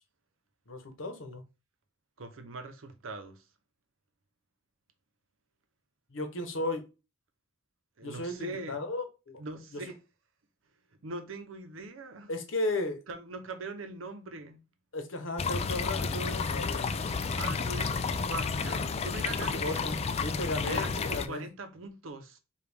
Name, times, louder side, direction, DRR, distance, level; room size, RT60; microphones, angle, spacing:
voice 1, 0.7-1.4 6.1-6.8 8.0-9.4 9.7-9.8 12.3-13.0 14.9-16.9 19.4-21.4, left 2 dB, 70° left, 0.9 m, -35 dB
voice 2, 2.2-3.4 8.0-8.8 9.4-10.0 11.0-12.3 13.1-14.6 17.1-19.9 20.6-22.4, right 2 dB, 75° right, 0.7 m, -41 dB
sound 1, 15.4-21.3, left 5 dB, 30° left, 0.3 m, -31 dB
5.0 x 2.4 x 3.3 m
head